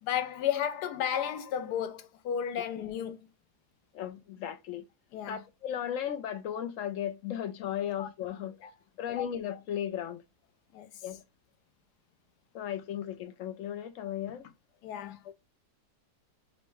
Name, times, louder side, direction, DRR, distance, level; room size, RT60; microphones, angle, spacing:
voice 1, 0.0-3.3 5.1-5.4 8.0-8.1 8.6-8.7 9.2-9.3 10.7-10.9 14.8-15.3, left 9 dB, 80° left, 1.2 m, -33 dB
voice 2, 3.9-4.8 5.3-8.6 9.0-10.2 11.0-11.2 12.5-14.5, left 10 dB, 65° left, 0.8 m, -36 dB
5.3 x 2.2 x 4.5 m
omnidirectional pair, 1.7 m